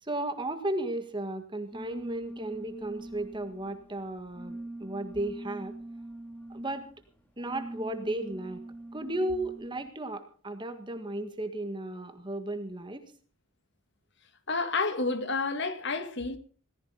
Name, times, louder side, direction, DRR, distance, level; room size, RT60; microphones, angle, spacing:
voice 1, 0.0-5.7 6.5-6.9 7.4-8.6 8.9-13.1, right 1 dB, 20° right, 1.7 m, -34 dB
sound 1, 1.7-9.9, right 2 dB, 10° left, 2.5 m, -44 dB
voice 2, 14.5-16.4, left 3 dB, 55° left, 2.1 m, -30 dB
18.0 x 15.5 x 3.9 m
head